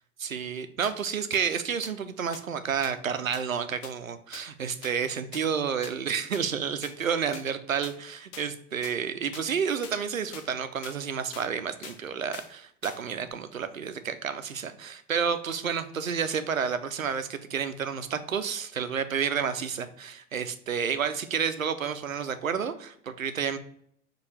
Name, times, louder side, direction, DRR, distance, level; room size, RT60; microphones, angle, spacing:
voice 1, 0.2-23.6, right 7 dB, 90° right, 10 dB, 0.5 m, -30 dB
sound 1, 0.8-0.9 1.3-1.4 1.8-1.9 2.3-2.4 2.8-2.9 3.3-3.4 3.8-3.9 4.3-4.4 4.8-4.9 5.3-5.4 5.8-5.9 6.3-6.4 6.8-6.9 7.3-7.4 7.8-7.9 8.3-8.4 8.8-8.9 9.3-9.5 9.8-10.0 10.3-10.5 10.8-11.0 11.3-11.5 11.8-12.0 12.3-12.5 12.8-13.0 13.3-13.4, left 7 dB, 30° left, 0.5 m, -43 dB
4.8 x 2.5 x 4.0 m, 0.67 s
figure-of-eight pair, 85°, 39 cm